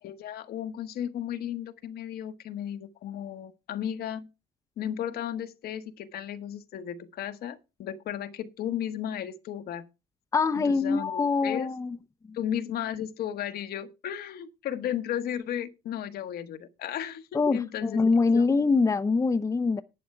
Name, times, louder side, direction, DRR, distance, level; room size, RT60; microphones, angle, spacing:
voice 1, 0.0-4.3 4.8-9.8 10.6-11.7 12.3-18.0 18.3-18.5, left 10 dB, 65° left, 1.1 m, -34 dB
voice 2, 10.3-12.0 12.3-12.4 17.3-19.8, left 4 dB, 20° left, 0.6 m, -24 dB
11.0 x 8.6 x 4.4 m
cardioid pair, 110°, 17 cm